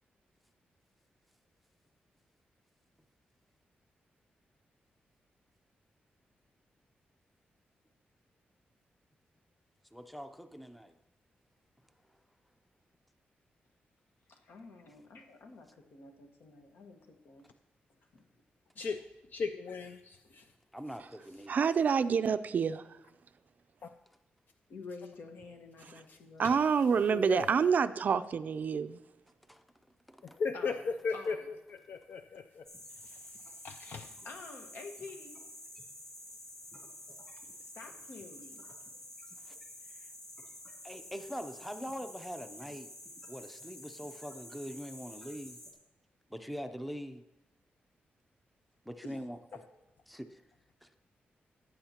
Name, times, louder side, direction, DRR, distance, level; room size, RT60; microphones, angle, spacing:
voice 1, 9.9-10.9 20.7-21.6 29.5-29.6 30.1-30.4 39.4-39.6 40.8-42.9 43.3-45.6 46.3-47.2 48.9-49.4 50.1-50.4 50.8-50.9, equal, ahead, 8 dB, 0.5 m, -43 dB
voice 2, 14.3-17.5 18.1-18.3 24.7-26.5 30.5-30.8 31.1-31.5 34.2-35.4 37.6-38.6 49.0-49.2, left 3 dB, 75° left, 4 dB, 1.4 m, -49 dB
voice 3, 18.8-20.5 23.8-23.9 26.1-26.2 26.4-26.7 27.0-27.5 30.2-34.1, left 5 dB, 55° left, 8 dB, 0.4 m, -38 dB
voice 4, 21.5-22.8 26.4-29.0, right 6 dB, 50° right, 12 dB, 0.4 m, -27 dB
sound 1, 32.6-45.7, left 1 dB, 20° left, 2.5 m, -50 dB
17.5 x 8.7 x 2.9 m, 0.98 s
wide cardioid pair, 145°, 4 cm